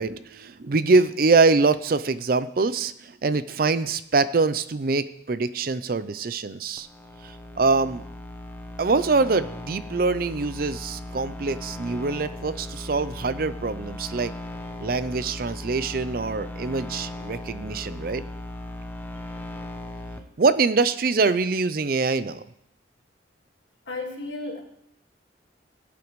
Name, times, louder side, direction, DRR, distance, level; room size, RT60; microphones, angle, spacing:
voice 1, 0.0-6.9 7.6-8.0 8.8-14.3 14.8-18.2 20.4-22.4, right 4 dB, 50° right, 0.5 m, -24 dB
sound 1, 6.8-20.2, left 1 dB, 10° left, 0.7 m, -37 dB
voice 2, 23.9-24.6, left 2 dB, 85° left, 1.9 m, -33 dB
19.0 x 8.4 x 3.1 m
head